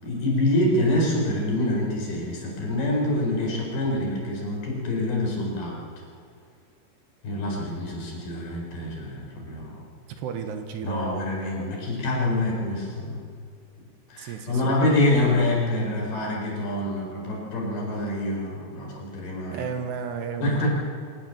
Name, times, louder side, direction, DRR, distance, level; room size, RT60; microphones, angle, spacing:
voice 1, 0.0-5.8 7.2-9.8 10.8-13.2 14.1-19.7 20.4-20.7, left 1 dB, 60° left, -2 dB, 6.6 m, -26 dB
voice 2, 10.1-11.9 14.2-14.8 16.9-17.0 19.5-20.7, right 7 dB, 75° right, 6 dB, 3.3 m, -34 dB
23.5 x 18.5 x 7.5 m, 2.2 s
omnidirectional pair, 5.2 m